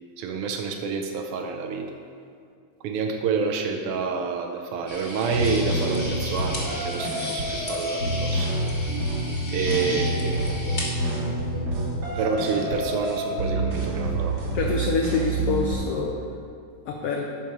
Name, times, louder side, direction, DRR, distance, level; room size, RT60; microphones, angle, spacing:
voice 1, 0.2-1.9 2.8-8.5 9.5-10.4 12.2-14.4, right 5 dB, 85° right, 3 dB, 1.2 m, -28 dB
sound 1, 4.9-10.9, left 1 dB, 25° left, 1.1 m, -35 dB
sound 2, 5.3-15.8, right 1 dB, 60° right, 2.5 m, -27 dB
voice 2, 14.5-16.1 16.9-17.2, left 4 dB, 70° left, 0 dB, 1.4 m, -26 dB
11.5 x 4.7 x 5.3 m, 2.3 s
omnidirectional pair, 3.4 m